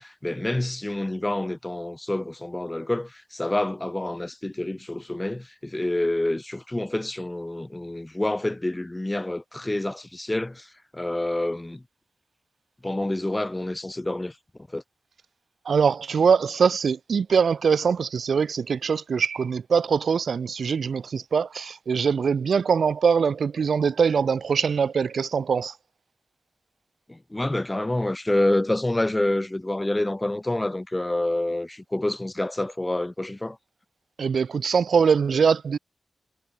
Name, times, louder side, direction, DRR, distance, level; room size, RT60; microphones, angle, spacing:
voice 1, 0.0-11.8 12.8-14.4 14.7-14.8 27.1-33.6, left 1 dB, 15° left, 3.9 m, -27 dB
voice 2, 15.7-25.7 34.2-35.8, right 6 dB, 70° right, 4.1 m, -22 dB
wide cardioid pair, 135°, 0 cm